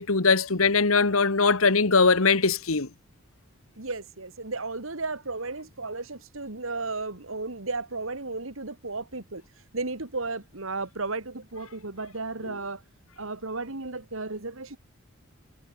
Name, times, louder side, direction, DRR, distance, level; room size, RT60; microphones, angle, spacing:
voice 1, 0.0-2.9 12.5-12.6, left 4 dB, 80° left, 1.6 m, -21 dB
voice 2, 3.8-9.4 9.7-12.8 13.2-14.8, right 3 dB, 70° right, 2.4 m, -34 dB
head